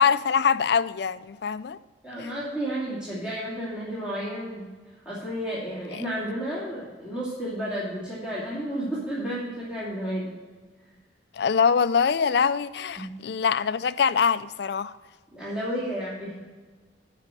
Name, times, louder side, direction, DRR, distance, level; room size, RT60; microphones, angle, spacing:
voice 1, 0.0-1.8 2.2-2.3 5.9-6.0 11.3-14.9, left 6 dB, 60° left, 0.4 m, -23 dB
voice 2, 2.0-4.6 5.0-10.4 13.0-13.1 15.3-16.3, equal, 5° right, 2.6 m, -32 dB
12.5 x 5.0 x 6.7 m
head